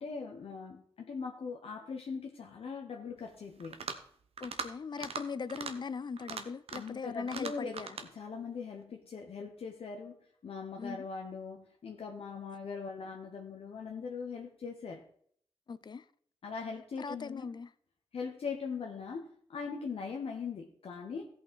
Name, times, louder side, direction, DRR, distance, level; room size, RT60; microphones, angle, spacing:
voice 1, 0.0-3.8 6.7-7.7 8.0-15.1 16.4-17.5 18.1-21.3, left 5 dB, 75° left, 1.1 m, -41 dB
sound 1, 3.6-4.1 4.4-4.7 5.0-5.2 5.5-5.7 6.2-7.0 7.3-8.1, right 5 dB, 75° right, 1.0 m, -40 dB
voice 2, 4.4-7.9 10.8-11.0 15.7-16.1 17.0-17.7, left 5 dB, 50° left, 0.5 m, -40 dB
16.0 x 5.7 x 4.7 m
wide cardioid pair, 95°, 10 cm